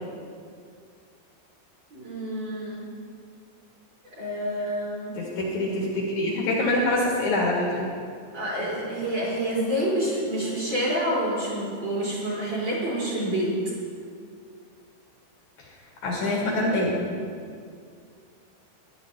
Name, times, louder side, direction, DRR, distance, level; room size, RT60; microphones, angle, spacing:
voice 1, 1.9-2.8 4.2-5.1 8.3-13.5, right 1 dB, 35° right, -8 dB, 4.1 m, -28 dB
voice 2, 5.1-7.9 16.0-17.0, left 1 dB, 60° left, -3 dB, 2.1 m, -25 dB
14.5 x 11.5 x 3.4 m, 2.2 s
omnidirectional pair, 5.6 m